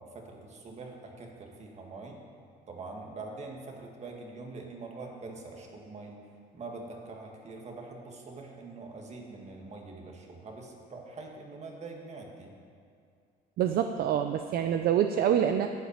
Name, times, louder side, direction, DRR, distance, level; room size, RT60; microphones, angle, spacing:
voice 1, 0.0-2.2 2.7-6.2 6.5-12.5, right 3 dB, 40° right, 1 dB, 2.1 m, -44 dB
voice 2, 13.6-15.7, right 9 dB, 65° right, 7 dB, 0.6 m, -26 dB
12.0 x 5.8 x 8.9 m, 2.3 s
cardioid pair, 110°, 17 cm